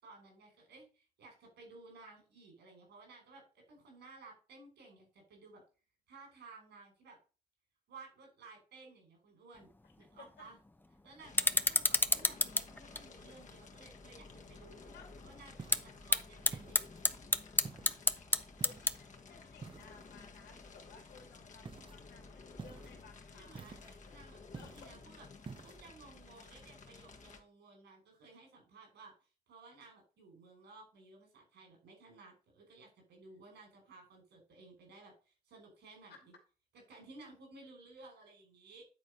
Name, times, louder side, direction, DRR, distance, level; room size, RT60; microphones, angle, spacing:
voice 1, 0.0-5.6 6.1-7.2 7.9-9.7 10.0-10.6 11.0-14.9 15.2-16.8 23.3-23.8 24.1-25.3 25.6-36.3 36.9-38.9, right 3 dB, 80° right, 2 dB, 5.4 m, -56 dB
sound 1, 9.5-19.3, left 2 dB, 10° left, 0.8 m, -35 dB
voice 2, 9.8-10.5 14.9-15.1 18.6-24.2 24.5-25.0 36.1-36.2, left 6 dB, 75° left, 4 dB, 2.4 m, -59 dB
Fire, 11.2-27.4, left 4 dB, 45° left, 1.6 m, -54 dB
sound 2, 15.6-16.0 16.5-17.1 17.6-18.0 18.6-19.0 19.6-20.1 21.6-22.0 22.6-23.0 23.5-24.0 24.5-25.0 25.4-25.8, right 5 dB, 30° right, 0.7 m, -49 dB
9.8 x 4.1 x 5.4 m, 0.34 s
supercardioid pair, 60°, 17 cm